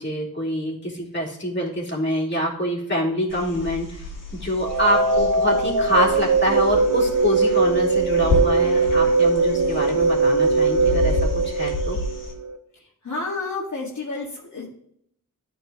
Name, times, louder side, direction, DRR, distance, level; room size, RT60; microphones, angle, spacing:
voice 1, 0.0-4.0 4.4-12.0, equal, 35° left, -3 dB, 3.0 m, -25 dB
sound 1, 3.3-12.3, left 2 dB, 75° left, 2.0 m, -31 dB
sound 2, 4.6-12.6, right 3 dB, 60° right, 1.1 m, -20 dB
voice 2, 13.0-14.7, left 3 dB, 60° left, -5 dB, 1.9 m, -30 dB
13.0 x 4.5 x 2.9 m, 0.69 s
wide cardioid pair, 90°, 32 cm